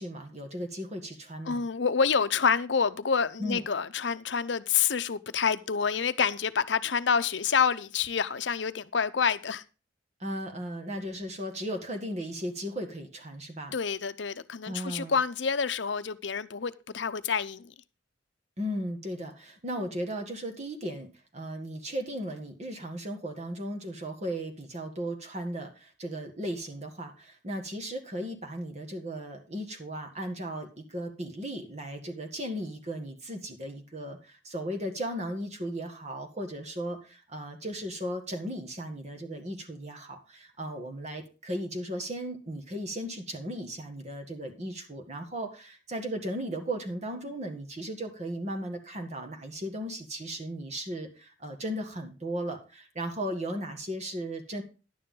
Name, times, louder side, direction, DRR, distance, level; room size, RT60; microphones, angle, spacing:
voice 1, 0.0-1.6 3.4-3.6 10.2-13.7 14.7-15.2 18.6-21.1 21.3-54.6, equal, 40° right, 1.8 m, -36 dB
voice 2, 1.5-9.6 13.7-17.7, left 6 dB, 75° left, 0.7 m, -28 dB
11.0 x 9.6 x 3.8 m
head